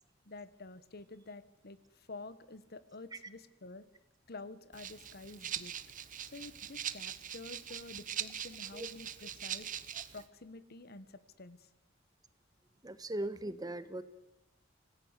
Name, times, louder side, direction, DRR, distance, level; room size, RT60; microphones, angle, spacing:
voice 1, 0.2-3.9 4.3-5.7 6.3-9.7 10.1-11.7, left 3 dB, 55° left, 15 dB, 1.4 m, -49 dB
Rattle (instrument), 4.7-10.3, right 9 dB, 45° right, 1.1 m, -42 dB
voice 2, 12.8-14.0, right 1 dB, 20° right, 13 dB, 1.3 m, -39 dB
25.5 x 19.0 x 8.3 m, 0.98 s
head